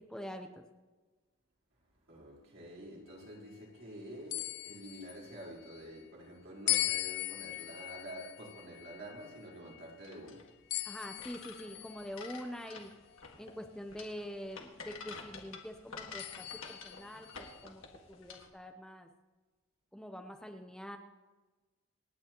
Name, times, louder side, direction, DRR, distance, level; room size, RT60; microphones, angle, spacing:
voice 1, 0.1-0.6 10.8-12.9 13.4-17.8 18.1-19.1 19.9-21.0, equal, 5° left, 0.7 m, -45 dB
voice 2, 1.9-10.6, equal, 65° right, 4.3 m, -48 dB
sound 1, 4.3-5.8 6.7-10.1 10.7-12.4 13.2-13.3 16.2-17.6, left 14 dB, 50° left, 0.3 m, -39 dB
sound 2, 10.0-18.5, left 4 dB, 80° left, 1.8 m, -49 dB
27.5 x 9.7 x 3.0 m
head